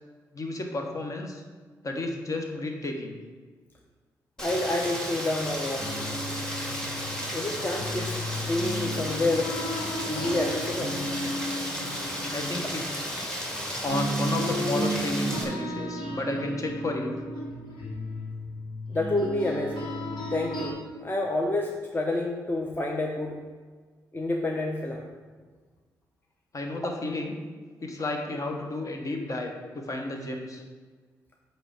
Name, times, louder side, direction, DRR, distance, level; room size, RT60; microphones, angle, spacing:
voice 1, 0.3-1.4 1.8-3.2 12.3-13.1 13.8-17.2 26.5-27.4 27.8-30.6, left 2 dB, 45° left, 3 dB, 1.4 m, -32 dB
voice 2, 4.4-6.1 7.3-9.5 10.0-11.0 18.9-19.9 20.3-23.4 24.1-25.0, left 2 dB, 25° left, 0 dB, 0.9 m, -29 dB
Rain, 4.4-15.4, equal, 10° left, 2.2 m, -34 dB
sound 1, 5.8-13.6 13.9-20.7, equal, 80° left, 2.0 m, -34 dB
8.7 x 3.1 x 6.5 m, 1.4 s
supercardioid pair, 50°, 8 cm